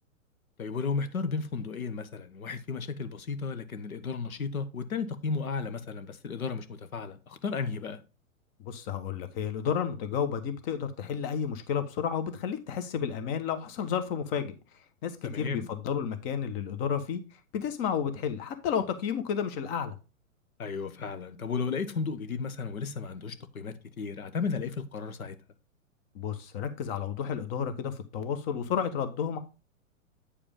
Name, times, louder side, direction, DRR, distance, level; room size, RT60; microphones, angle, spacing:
voice 1, 0.6-8.0 15.2-15.7 20.6-25.4, left 5 dB, 90° left, 1.2 m, -34 dB
voice 2, 8.6-14.5 15.0-17.2 17.5-20.0 26.1-29.4, left 7 dB, 40° left, 1.3 m, -31 dB
8.7 x 4.9 x 3.7 m
hypercardioid pair, 120°, 41 cm